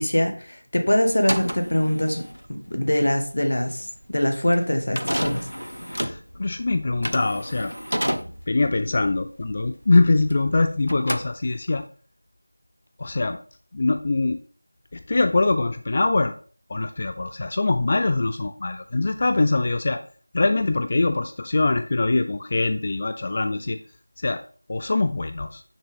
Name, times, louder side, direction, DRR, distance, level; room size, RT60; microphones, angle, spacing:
voice 1, 0.0-2.2 2.5-3.9 4.1-5.5, left 1 dB, 50° left, 1.2 m, -23 dB
sound 1, 1.1-10.6 10.8-11.9, equal, 85° right, 0.8 m, -31 dB
voice 2, 5.9-7.7 8.5-11.9 13.0-13.4 13.7-14.4 14.9-16.3 16.7-20.0 20.3-23.8 24.2-24.4 24.7-25.6, left 3 dB, 25° left, 0.3 m, -23 dB
6.4 x 5.9 x 3.5 m
figure-of-eight pair, 170°, 0 cm